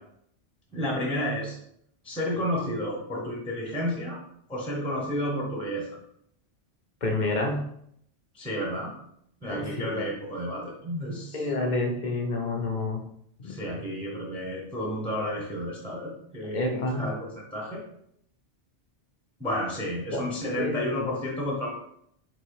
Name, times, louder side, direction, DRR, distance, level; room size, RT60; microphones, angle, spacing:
voice 1, 0.7-1.6 2.0-4.2 4.5-6.0 8.3-8.9 9.4-11.5 13.4-17.8 19.4-21.7, equal, 5° left, -4 dB, 0.7 m, -31 dB
voice 2, 7.0-7.7 9.5-10.0 11.3-13.0 13.4-13.6 16.5-17.1 20.1-20.3 20.6-21.1, left 2 dB, 50° left, 2 dB, 0.7 m, -29 dB
3.8 x 2.9 x 4.7 m, 0.71 s
omnidirectional pair, 1.2 m